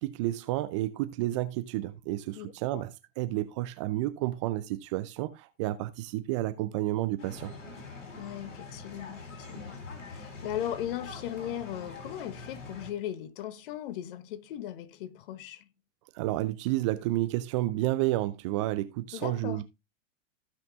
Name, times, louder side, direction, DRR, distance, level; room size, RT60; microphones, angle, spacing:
voice 1, 0.0-7.5 16.1-19.6, right 16 dB, 25° right, 0.4 m, -31 dB
voice 2, 2.3-2.8 8.2-15.7 19.1-19.6, left 11 dB, 45° left, 1.0 m, -38 dB
sound 1, 7.2-12.9, left 3 dB, 70° left, 4.0 m, -44 dB
15.5 x 5.8 x 2.5 m
figure-of-eight pair, 105°, 38 cm